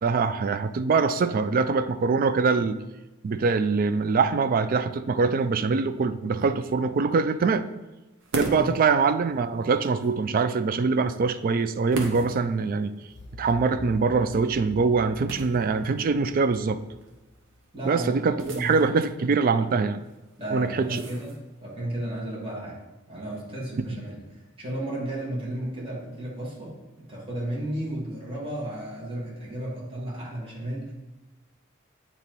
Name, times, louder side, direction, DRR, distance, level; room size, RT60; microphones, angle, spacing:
voice 1, 0.0-2.8 3.2-7.7 8.3-12.9 13.4-16.8 17.8-20.0 20.5-21.0, right 4 dB, 45° right, 12 dB, 0.3 m, -23 dB
sound 1, 8.2-21.8, right 2 dB, 65° right, 0.9 m, -41 dB
sound 2, 13.1-18.0, left 2 dB, 5° left, 1.7 m, -46 dB
voice 2, 17.7-18.7 20.4-22.8 23.1-30.9, right 1 dB, 25° right, -5 dB, 1.6 m, -33 dB
8.3 x 2.9 x 4.5 m, 1.1 s
head